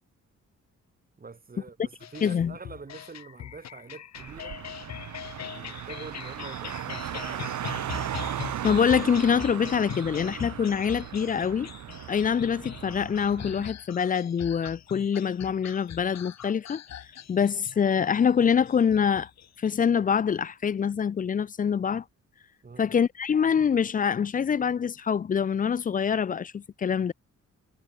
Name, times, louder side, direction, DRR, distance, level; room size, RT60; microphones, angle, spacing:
voice 1, 1.2-4.6 5.4-7.5 22.6-22.9, right 4 dB, 30° right, 3.2 m, -45 dB
sound 1, 2.0-19.8, left 10 dB, 65° left, 1.4 m, -42 dB
voice 2, 2.2-2.5 8.6-11.7 12.1-16.8 17.3-19.3 19.6-22.0 22.8-27.1, left 7 dB, 30° left, 0.4 m, -25 dB
Car, 4.1-13.7, right 11 dB, 75° right, 1.9 m, -37 dB
cardioid pair, 105°, 29 cm